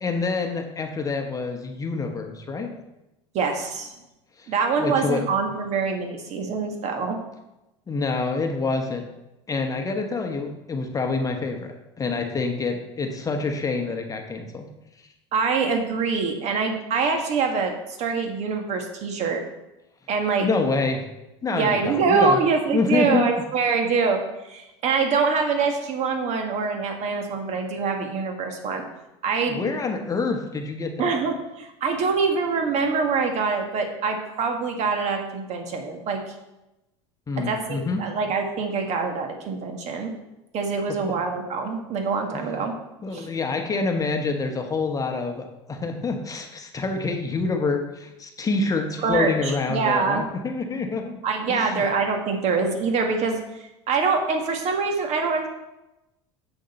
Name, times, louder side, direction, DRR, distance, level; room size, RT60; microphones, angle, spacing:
voice 1, 0.0-2.7 4.4-4.5 4.8-5.2 7.9-9.1 9.5-14.7 20.4-21.0 21.4-22.4 22.7-23.3 27.5-27.6 29.5-31.1 37.3-38.0 41.0-41.1 42.3-42.6 43.0-51.2 51.5-51.8, left 3 dB, 25° left, 4 dB, 1.1 m, -27 dB
voice 2, 3.3-3.9 4.5-7.2 15.3-17.7 18.0-19.4 20.1-20.5 21.5-28.8 29.2-29.6 31.0-36.3 37.4-40.1 40.5-42.7 43.1-43.3 49.0-50.3 51.2-53.4 53.9-55.5, right 5 dB, 50° right, 4 dB, 1.7 m, -24 dB
7.9 x 6.4 x 4.3 m, 0.95 s
hypercardioid pair, 90°, 15 cm